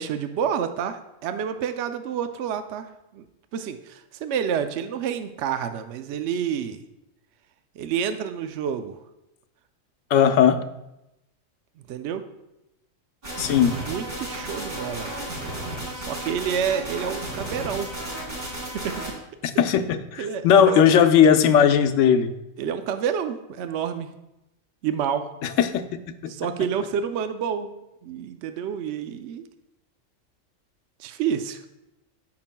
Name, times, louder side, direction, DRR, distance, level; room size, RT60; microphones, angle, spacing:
voice 1, 0.0-3.3 3.5-6.8 7.8-9.0 11.9-12.2 13.6-15.1 16.0-17.9 18.7-19.0 20.2-20.9 22.6-24.1 24.8-25.3 26.3-27.7 28.0-29.4 31.0-31.6, right 8 dB, 70° right, 9 dB, 0.8 m, -29 dB
voice 2, 10.1-10.6 13.4-13.8 19.4-22.3 25.4-26.3, left 8 dB, 75° left, 8 dB, 1.0 m, -18 dB
sound 1, 13.2-19.1, right 1 dB, 50° right, 3.1 m, -33 dB
14.5 x 5.8 x 2.2 m, 0.91 s
omnidirectional pair, 1.3 m